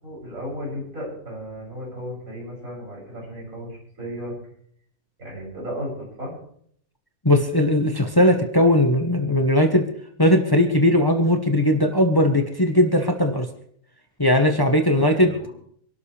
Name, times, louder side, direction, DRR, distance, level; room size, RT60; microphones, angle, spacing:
voice 1, 0.0-4.3 5.2-6.3 14.8-15.5, equal, 90° right, -4 dB, 7.8 m, -35 dB
voice 2, 7.2-9.9 10.2-13.5 14.2-15.3, left 1 dB, 20° left, 4 dB, 1.2 m, -18 dB
25.5 x 12.5 x 3.4 m, 0.64 s
omnidirectional pair, 1.4 m